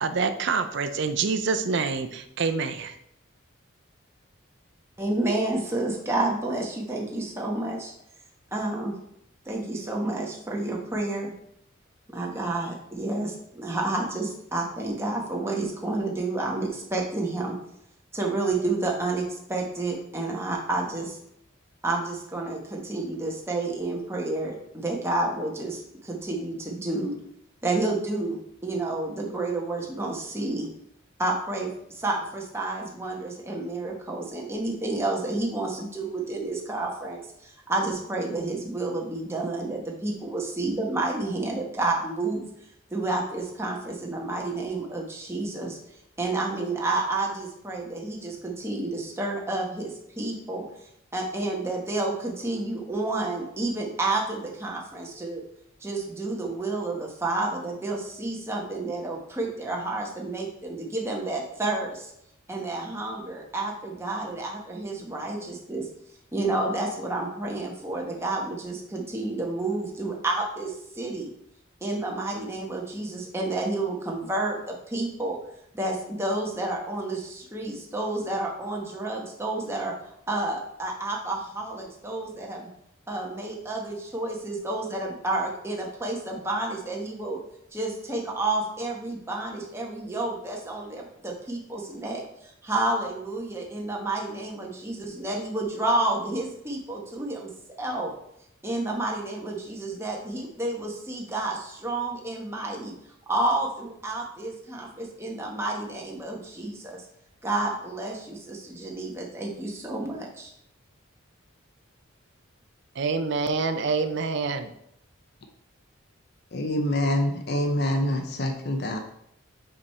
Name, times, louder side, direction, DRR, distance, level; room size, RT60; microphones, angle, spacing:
voice 1, 0.0-3.0 113.0-114.7, right 4 dB, 60° right, 9 dB, 0.5 m, -26 dB
voice 2, 5.0-7.9 8.5-8.9 9.4-11.3 12.1-17.6 18.1-21.2 21.8-27.2 27.6-30.7 31.2-42.5 42.9-45.8 46.2-50.6 51.1-55.4 55.8-62.1 62.5-65.9 66.3-71.3 71.8-75.4 75.7-79.9 80.3-82.7 83.1-87.4 87.7-97.5 97.8-98.1 98.6-102.9 103.3-107.0 107.4-110.5, right 2 dB, 15° right, -1 dB, 1.0 m, -30 dB
voice 3, 116.5-119.0, left 1 dB, 55° left, 4 dB, 0.6 m, -26 dB
5.1 x 4.7 x 4.2 m, 0.74 s
head